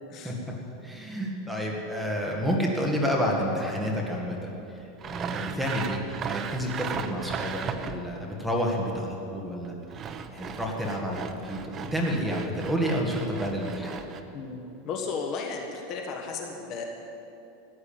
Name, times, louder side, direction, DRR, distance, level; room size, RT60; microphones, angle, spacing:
voice 1, 0.2-0.5 0.8-14.0, equal, ahead, -2 dB, 1.8 m, -30 dB
Sawing, 5.0-8.2 9.6-14.2, right 6 dB, 25° right, 0.7 m, -36 dB
voice 2, 14.3-16.9, left 4 dB, 35° left, 3 dB, 1.4 m, -35 dB
15.0 x 9.6 x 8.8 m, 2.9 s
supercardioid pair, 160°, 0 cm